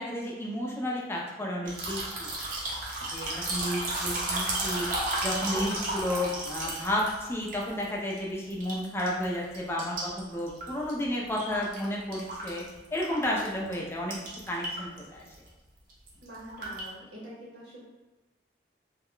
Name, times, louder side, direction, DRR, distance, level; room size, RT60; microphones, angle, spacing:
voice 1, 0.0-2.3 3.1-4.9 5.2-12.6 12.9-14.2 14.5-15.3, left 1 dB, 15° left, -3 dB, 0.4 m, -32 dB
sound 1, 1.6-8.2 8.5-9.3 9.5-11.8 12.1-13.5 13.7-13.8 14.1-15.0 15.3-15.5 15.9-16.9, right 2 dB, 45° right, 0.6 m, -33 dB
voice 2, 16.2-17.8, equal, 80° right, -7 dB, 0.8 m, -45 dB
2.3 x 2.1 x 3.6 m, 1.1 s
head